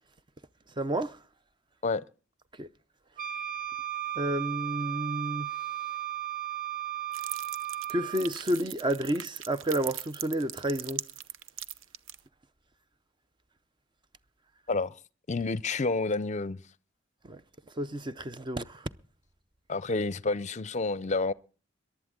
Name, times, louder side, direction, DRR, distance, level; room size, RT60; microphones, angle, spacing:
voice 1, 0.8-1.2 2.6-2.7 4.2-5.5 7.9-11.0 17.3-17.4 17.8-18.9, right 1 dB, 25° right, 0.6 m, -30 dB
Wind instrument woodwind instrument, 3.2-8.3, right 12 dB, 45° right, 1.1 m, -35 dB
sound 1, 7.1-12.2, right 11 dB, 80° right, 0.8 m, -40 dB
voice 2, 14.7-15.0 15.3-16.6 19.7-21.3, left 3 dB, 35° left, 0.6 m, -29 dB
22.5 x 11.5 x 3.7 m
head